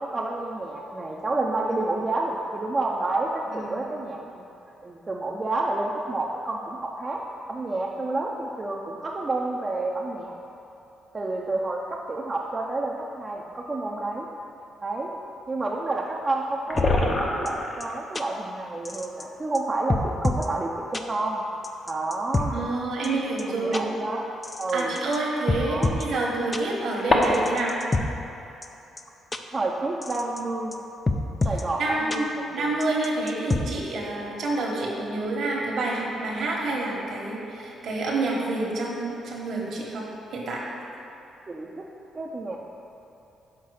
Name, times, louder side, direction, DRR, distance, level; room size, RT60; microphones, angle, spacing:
voice 1, 0.0-4.4 4.8-7.2 7.5-10.3 11.1-14.3 14.8-15.1 15.5-21.4 21.9-22.7 23.0-23.1 23.4-24.2 24.6-25.0 25.6-26.0 29.5-30.8 31.4-32.7 41.5-41.9 42.1-42.6, right 2 dB, 30° right, -2 dB, 0.6 m, -29 dB
voice 2, 3.5-3.8 22.5-23.9 24.7-27.7 31.8-32.3 32.5-40.6, right 2 dB, 65° right, -3 dB, 1.4 m, -28 dB
sound 1, 13.4-13.5 16.0-16.1 16.3-16.4 16.6-18.0 19.4-19.5 20.3-20.4 22.4-22.6 23.9-24.0 26.0-27.7, left 2 dB, 40° left, 0.9 m, -25 dB
sound 2, 16.8-16.9 17.5-17.6 17.8-17.9 18.1-18.2 18.8-19.2 19.5-19.6 19.9-20.5 20.9-21.0 21.6-22.5 23.0-23.1 23.4-23.5 23.7-23.8 24.4-25.2 25.5-26.0 26.5-26.6 27.2-28.0 28.6-28.7 29.0-29.1 29.3-29.4 30.0-30.4 30.7-30.8 31.1-31.6 32.1-32.2 32.8-33.6, left 3 dB, 25° left, 0.4 m, -26 dB
5.9 x 4.6 x 6.4 m, 2.9 s
cardioid pair, 90°, 0 cm